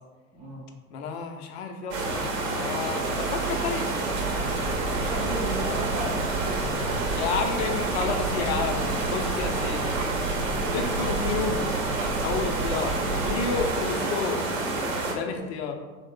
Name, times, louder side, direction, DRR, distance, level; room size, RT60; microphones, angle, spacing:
voice 1, 0.3-0.6 5.0-6.5 13.7-14.0 15.1-15.4, equal, 10° right, -5 dB, 0.6 m, -36 dB
voice 2, 0.9-2.3 2.5-3.8 7.1-9.9 10.6-11.7 12.2-14.4 15.1-15.7, left 5 dB, 55° left, 4 dB, 0.5 m, -31 dB
sound 1, 1.9-15.1, right 2 dB, 50° right, 0.8 m, -29 dB
sound 2, 4.1-13.7, right 3 dB, 80° right, 0.6 m, -32 dB
3.1 x 2.0 x 3.5 m, 1.3 s
hypercardioid pair, 95°, 40 cm